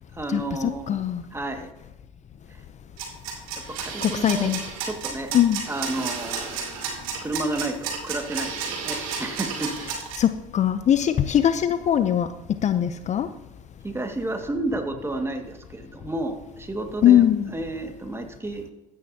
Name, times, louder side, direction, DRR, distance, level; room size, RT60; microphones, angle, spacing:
voice 1, 0.1-1.0 1.3-1.7 2.5-2.6 3.7-4.5 4.8-5.3 5.7-6.6 7.2-9.7 13.8-18.7, right 2 dB, 15° right, 4 dB, 1.9 m, -31 dB
voice 2, 0.9-1.2 4.0-4.6 5.3-5.6 10.2-12.3 12.6-13.3 17.0-17.5, left 10 dB, 40° left, 11 dB, 0.6 m, -20 dB
sound 1, 3.0-10.2, right 6 dB, 85° right, 2.6 m, -32 dB
13.5 x 9.4 x 2.8 m, 1.0 s
hypercardioid pair, 70°, 18 cm